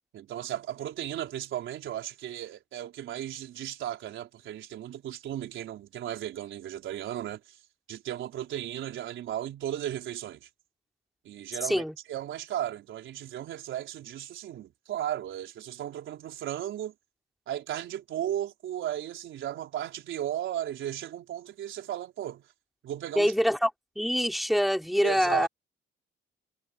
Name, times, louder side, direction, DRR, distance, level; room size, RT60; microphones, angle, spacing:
voice 1, 0.1-7.6 7.9-10.5 11.2-11.8 12.1-16.9 17.5-22.4 22.8-23.3 25.0-25.5, right 11 dB, 75° right, 4.1 m, -35 dB
voice 2, 11.6-11.9 23.2-23.7 24.0-25.5, equal, ahead, 4.0 m, -25 dB
cardioid pair, 90°, 20 cm